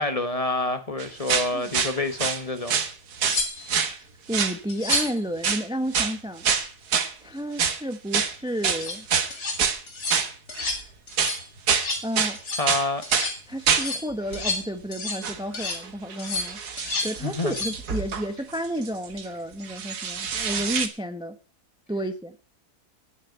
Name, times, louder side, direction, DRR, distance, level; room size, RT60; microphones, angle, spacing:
voice 1, 0.0-2.8 12.6-13.0 17.2-17.5, left 2 dB, 25° left, 1.2 m, -27 dB
sound 1, 1.0-2.4 2.7-3.4 3.7-4.0 4.3-4.6 4.9-5.1 5.4-5.6 5.9-6.2 6.4-7.1 7.6-7.8 8.1-8.3 8.6-9.8 10.1-10.8 11.1-11.9 12.1-12.4 12.7-13.3 13.7-13.9 14.3-14.5 15.2-15.4 15.7-19.3 19.6-20.9, right 6 dB, 75° right, 1.9 m, -26 dB
sound 2, 2.7-2.8 3.3-3.9 4.7-5.2 8.6-9.0 9.3-9.6 9.9-10.2 10.5-10.8 11.1-11.5 11.7-12.1 12.4-12.7 13.0-13.4 13.7-15.3 15.5-15.8 16.2-17.1 17.4-17.8 20.4-20.6, left 3 dB, 80° left, 3.2 m, -31 dB
voice 2, 4.0-6.5 7.2-9.1 12.0-12.4 13.5-21.3 21.9-22.3, equal, 5° right, 0.6 m, -31 dB
10.0 x 9.8 x 7.8 m
omnidirectional pair, 1.7 m